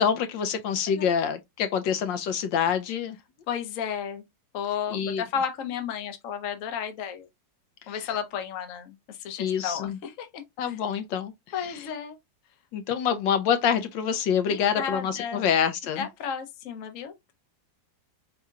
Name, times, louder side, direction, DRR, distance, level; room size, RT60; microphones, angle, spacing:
voice 1, 0.0-3.2 4.9-5.2 7.9-8.0 9.4-10.0 10.6-11.3 11.6-11.8 12.7-16.1, left 7 dB, 80° left, 1.3 m, -26 dB
voice 2, 3.5-4.2 4.5-7.3 7.9-10.8 11.5-12.2 14.5-15.5 16.0-17.3, left 7 dB, 55° left, 1.1 m, -33 dB
4.2 x 3.8 x 2.3 m
omnidirectional pair, 2.0 m